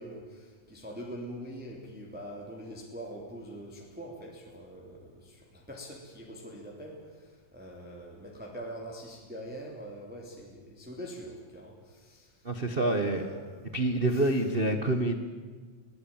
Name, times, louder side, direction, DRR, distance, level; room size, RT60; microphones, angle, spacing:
voice 1, 0.0-14.4, equal, 5° right, -1 dB, 2.9 m, -43 dB
voice 2, 12.4-13.2 13.7-15.2, right 2 dB, 80° right, 7 dB, 0.5 m, -27 dB
22.5 x 18.5 x 8.9 m, 1.5 s
omnidirectional pair, 3.4 m